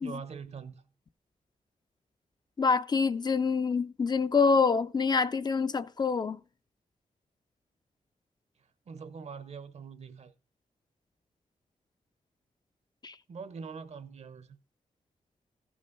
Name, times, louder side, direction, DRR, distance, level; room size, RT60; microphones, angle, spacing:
voice 1, 0.0-0.8 8.6-10.3 13.3-14.6, right 5 dB, 55° right, 0.9 m, -43 dB
voice 2, 2.6-6.4 13.0-13.1, left 5 dB, 30° left, 0.4 m, -26 dB
15.5 x 6.2 x 3.9 m
wide cardioid pair, 160°, 13 cm